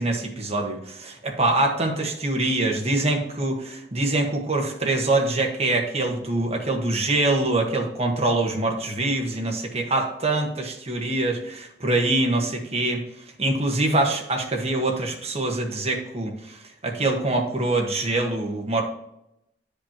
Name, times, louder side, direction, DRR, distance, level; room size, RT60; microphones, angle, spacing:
voice 1, 0.0-13.0 13.4-18.8, right 2 dB, 35° right, 2 dB, 1.4 m, -24 dB
10.5 x 5.2 x 3.0 m, 0.81 s
head